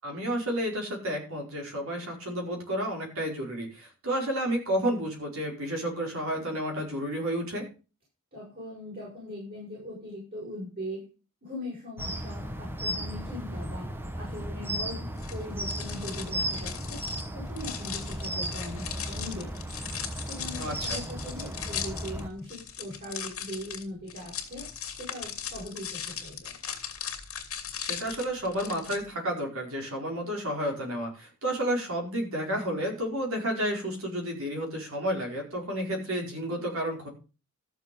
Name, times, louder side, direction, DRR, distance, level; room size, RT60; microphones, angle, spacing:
voice 1, 0.0-7.6 20.6-21.0 27.8-37.1, equal, 65° right, 1 dB, 4.9 m, -31 dB
voice 2, 8.3-11.0 11.4-13.9 14.2-17.0 17.3-19.5 20.2-24.7 24.9-26.5, left 1 dB, 45° right, -5 dB, 6.9 m, -40 dB
sound 1, 12.0-22.3, right 1 dB, 10° right, 1.1 m, -35 dB
sound 2, 15.2-29.0, left 8 dB, 65° left, 2.5 m, -38 dB
13.5 x 7.2 x 5.4 m, 0.33 s
head